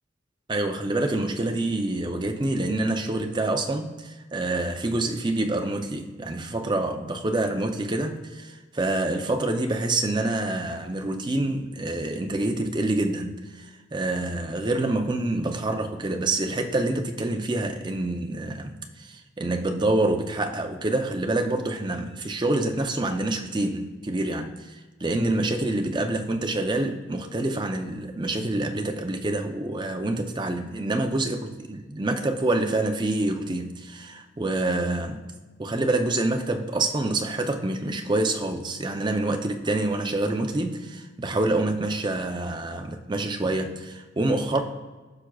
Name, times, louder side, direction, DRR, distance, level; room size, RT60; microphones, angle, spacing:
voice 1, 0.5-35.2 35.6-44.6, right 2 dB, 20° right, 5 dB, 0.5 m, -27 dB
14.5 x 5.9 x 2.3 m, 1.3 s
head